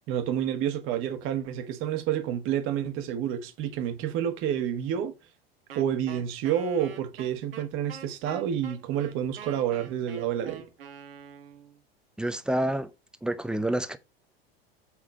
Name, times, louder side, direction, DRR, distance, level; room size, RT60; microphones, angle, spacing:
voice 1, 0.1-5.1 5.7-10.6, right 9 dB, 40° right, 1.5 m, -29 dB
Wind instrument woodwind instrument, 5.7-11.8, right 8 dB, 70° right, 1.4 m, -44 dB
voice 2, 12.2-12.9 13.2-14.0, right 1 dB, 5° right, 0.6 m, -28 dB
8.4 x 3.7 x 5.9 m
figure-of-eight pair, 85°, 30 cm